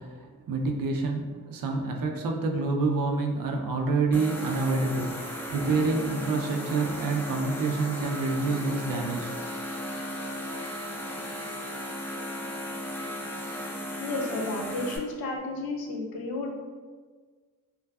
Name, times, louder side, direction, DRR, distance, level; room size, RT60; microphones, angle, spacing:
voice 1, 0.0-9.3, right 3 dB, 60° right, 1 dB, 0.5 m, -28 dB
sound 1, 4.1-15.0, equal, 5° left, 0.4 m, -36 dB
voice 2, 14.0-16.5, left 2 dB, 70° left, 0 dB, 0.6 m, -32 dB
2.4 x 2.3 x 2.2 m, 1.5 s
supercardioid pair, 50°, 38 cm